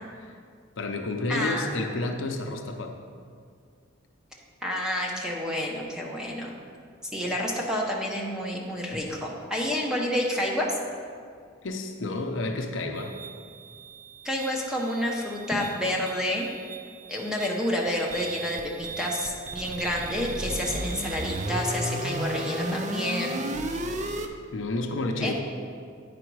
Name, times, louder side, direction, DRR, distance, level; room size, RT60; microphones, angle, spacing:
voice 1, 0.8-2.9 11.6-13.1 24.5-25.3, left 2 dB, 70° left, 3 dB, 0.7 m, -30 dB
voice 2, 1.3-1.9 4.6-6.5 7.1-10.7 14.2-16.5 17.1-23.4 25.2-25.3, left 1 dB, 5° right, -2 dB, 0.9 m, -29 dB
sound 1, 13.0-24.3, right 2 dB, 35° right, 0.5 m, -35 dB
9.3 x 5.1 x 4.6 m, 2.2 s
head